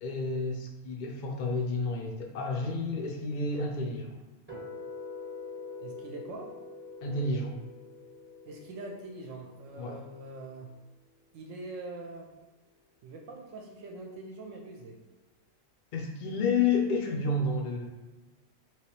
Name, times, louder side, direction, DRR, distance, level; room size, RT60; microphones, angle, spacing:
voice 1, 0.0-4.2 7.0-7.5 9.8-10.0 15.9-17.9, left 3 dB, 75° left, 1 dB, 0.4 m, -30 dB
sound 1, 4.5-10.6, left 4 dB, 10° right, 0.5 m, -45 dB
voice 2, 5.8-6.5 8.4-10.7 11.3-12.3 13.0-15.0, right 2 dB, 70° right, 1 dB, 0.9 m, -43 dB
3.3 x 2.9 x 3.0 m, 1.2 s
omnidirectional pair, 1.5 m